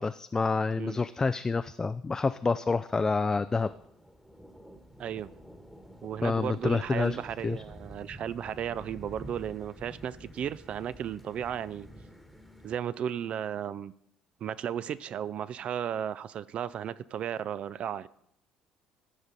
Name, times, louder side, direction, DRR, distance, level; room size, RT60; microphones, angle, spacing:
voice 1, 0.0-3.7 6.2-7.2 7.4-7.6, left 4 dB, 20° left, 11 dB, 0.3 m, -28 dB
sound 1, 3.4-12.7, equal, ahead, 1.3 m, -49 dB
voice 2, 6.0-11.9 12.6-13.9 14.4-18.1, right 9 dB, 50° right, 17 dB, 0.4 m, -34 dB
14.0 x 5.1 x 4.1 m, 0.73 s
figure-of-eight pair, 55°, 3 cm